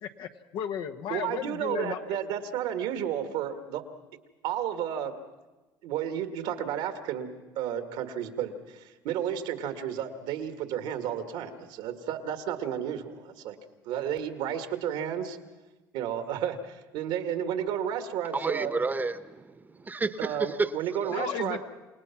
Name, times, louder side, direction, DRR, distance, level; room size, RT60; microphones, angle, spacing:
voice 1, 0.0-2.0 21.1-21.6, left 9 dB, 65° left, 1.3 m, -34 dB
voice 2, 1.1-3.8 4.4-5.2 5.8-7.3 7.6-13.6 13.9-15.4 15.9-18.8 20.2-21.6, right 9 dB, 75° right, 2.0 m, -32 dB
voice 3, 18.3-20.7 21.0-21.2, right 3 dB, 20° right, 1.1 m, -31 dB
28.5 x 18.5 x 6.0 m
supercardioid pair, 95°, 8 cm